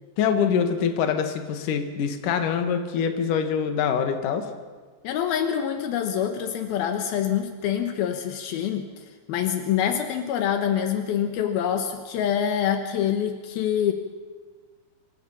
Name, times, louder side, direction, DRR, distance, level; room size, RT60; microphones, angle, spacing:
voice 1, 0.2-4.5, left 7 dB, 65° left, 6 dB, 3.1 m, -24 dB
voice 2, 5.0-13.9, left 9 dB, 80° left, 6 dB, 3.0 m, -26 dB
25.5 x 23.0 x 5.7 m, 1.5 s
omnidirectional pair, 4.3 m